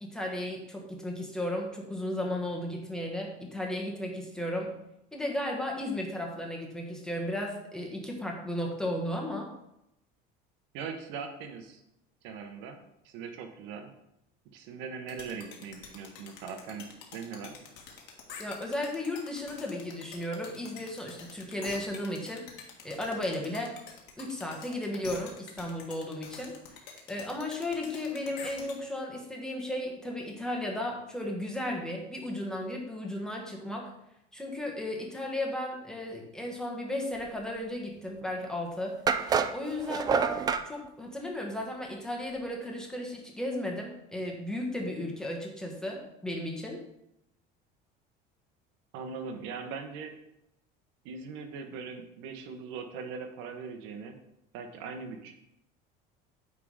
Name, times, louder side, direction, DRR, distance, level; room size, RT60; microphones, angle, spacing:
voice 1, 0.0-4.7 5.1-9.5 18.4-22.4 22.8-23.7 24.2-26.8 27.1-33.9 34.3-38.9 39.5-40.3 40.6-46.8, left 1 dB, 5° left, 0 dB, 1.4 m, -35 dB
voice 2, 10.7-11.8 12.2-12.8 13.0-13.9 14.5-17.5 48.9-50.1 51.0-54.2 54.5-55.3, right 5 dB, 65° right, 5 dB, 1.1 m, -40 dB
sound 1, 15.1-28.7, left 6 dB, 60° left, 1.7 m, -46 dB
sound 2, 38.2-38.3 39.1-40.7, right 6 dB, 20° right, 0.3 m, -27 dB
9.4 x 3.7 x 4.8 m, 0.83 s
cardioid pair, 145°, 21 cm